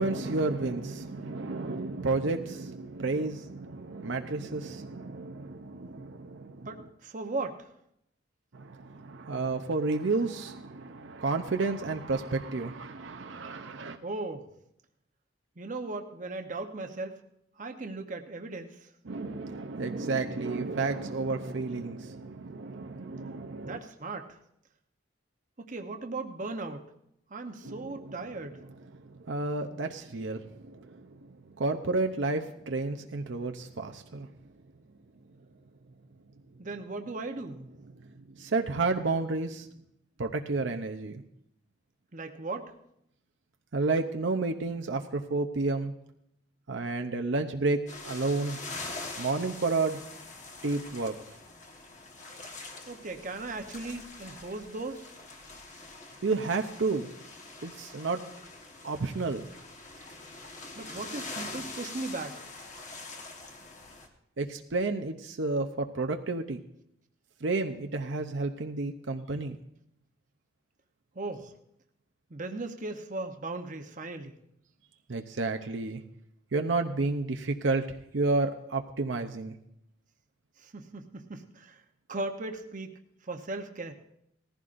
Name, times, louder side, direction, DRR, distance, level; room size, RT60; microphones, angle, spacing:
voice 1, 0.0-6.7 8.5-14.0 19.1-23.8 27.6-28.2 29.0-34.3 38.4-39.7 40.2-41.2 43.7-45.9 46.7-48.6 49.2-50.0 50.6-51.1 56.2-57.1 57.6-58.2 58.8-59.5 64.4-66.6 67.4-69.6 75.1-76.0 76.5-77.8 78.1-79.5, right 3 dB, 70° right, 5 dB, 0.7 m, -31 dB
voice 2, 6.6-7.7 14.0-14.5 15.6-17.2 17.6-18.9 23.6-24.4 25.6-26.9 27.3-28.6 36.6-37.7 42.1-42.7 52.9-55.1 60.8-62.5 71.1-71.5 72.3-74.4 80.6-81.8 82.1-83.9, right 2 dB, 40° right, 5 dB, 0.9 m, -37 dB
sound 1, 47.9-64.1, left 3 dB, 40° left, 1.3 m, -44 dB
19.0 x 15.0 x 2.6 m, 0.76 s
head